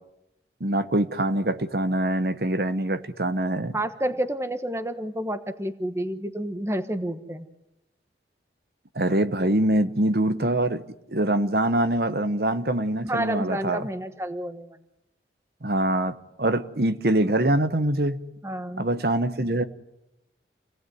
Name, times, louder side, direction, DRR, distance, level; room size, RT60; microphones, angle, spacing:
voice 1, 0.6-3.8 8.9-10.8 11.1-13.9 15.6-18.2 18.8-19.6, right 1 dB, 60° right, 11 dB, 1.2 m, -24 dB
voice 2, 3.7-7.5 13.0-14.8 18.4-18.9, right 1 dB, 15° right, 10 dB, 1.2 m, -30 dB
28.5 x 18.0 x 9.5 m, 0.88 s
head